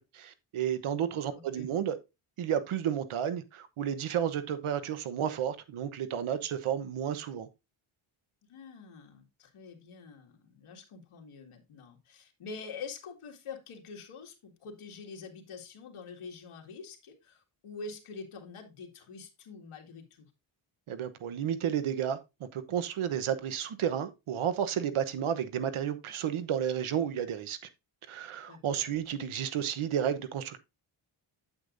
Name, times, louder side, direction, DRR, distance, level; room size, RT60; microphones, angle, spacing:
voice 1, 0.0-2.0 2.4-7.5 20.9-27.6 28.1-30.6, right 9 dB, 75° right, 1.1 m, -32 dB
voice 2, 1.3-1.7 8.5-20.3 28.5-28.9, left 4 dB, 80° left, 2.2 m, -46 dB
8.5 x 8.2 x 2.6 m
cardioid pair, 115°, 50 cm